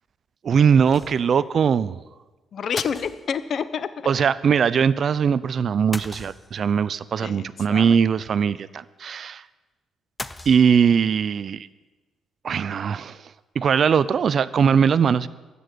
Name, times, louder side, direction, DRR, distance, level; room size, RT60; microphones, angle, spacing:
voice 1, 0.4-2.0 4.1-9.4 10.5-11.7 12.4-13.2 13.6-15.3, right 7 dB, 55° right, 17 dB, 0.5 m, -20 dB
sound 1, 0.9-1.4 1.7-1.8 2.8-3.6 5.9-6.8 10.2-11.1, left 2 dB, 15° left, 0.6 m, -37 dB
voice 2, 2.5-3.9 4.2-4.3 7.2-8.0, left 7 dB, 55° left, 13 dB, 0.8 m, -29 dB
12.5 x 6.9 x 9.3 m, 1.2 s
cardioid pair, 90°, 0 cm